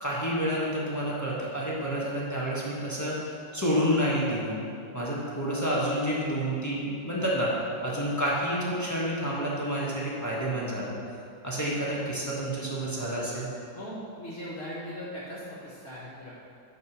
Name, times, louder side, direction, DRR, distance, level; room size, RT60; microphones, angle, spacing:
voice 1, 0.0-3.1 3.5-4.6 4.9-7.5 7.8-11.0 11.4-13.5, equal, 10° left, -6 dB, 1.1 m, -29 dB
voice 2, 13.7-16.3, equal, 35° left, -6 dB, 1.4 m, -39 dB
9.8 x 4.0 x 6.1 m, 2.5 s
omnidirectional pair, 2.1 m